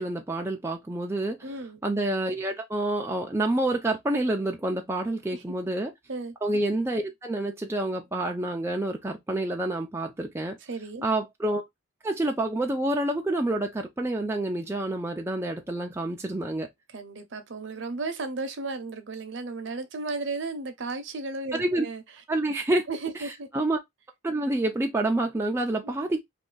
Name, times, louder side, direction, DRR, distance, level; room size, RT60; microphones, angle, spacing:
voice 1, 0.0-1.4 1.8-5.9 6.4-10.6 11.0-11.6 12.0-16.7 21.6-21.9 22.3-22.8 23.2-23.8 24.2-26.2, right 1 dB, 10° right, 0.4 m, -28 dB
voice 2, 1.4-1.8 5.3-5.4 6.1-6.3 10.7-11.0 16.9-22.0 22.9-23.5 25.8-25.9, right 3 dB, 60° right, 0.7 m, -34 dB
2.6 x 2.5 x 3.7 m
head